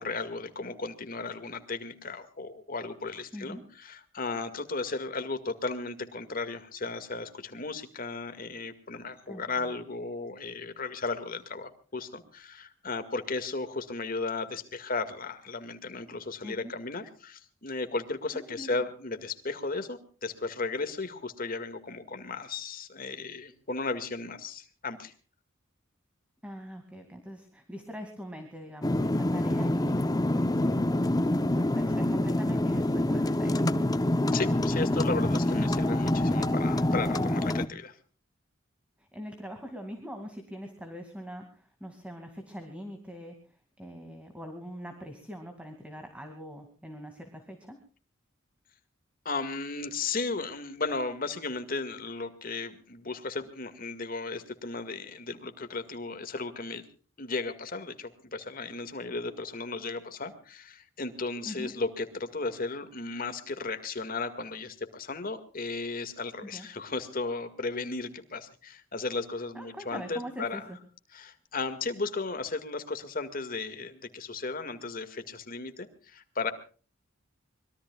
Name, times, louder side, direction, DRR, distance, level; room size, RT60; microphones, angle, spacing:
voice 1, 0.0-25.1 34.3-38.0 49.3-56.9 57.2-70.6 71.1-76.5, left 3 dB, 45° left, 9 dB, 2.1 m, -35 dB
voice 2, 9.3-9.8 16.4-16.7 18.3-18.8 26.4-30.8 31.5-33.6 39.0-43.3 43.8-47.8 61.4-61.7 66.5-66.7 69.5-70.8, equal, 5° right, 5 dB, 2.3 m, -43 dB
sound 1, 28.8-37.7, left 1 dB, 20° left, 0.7 m, -26 dB
25.0 x 21.5 x 2.4 m, 0.40 s
head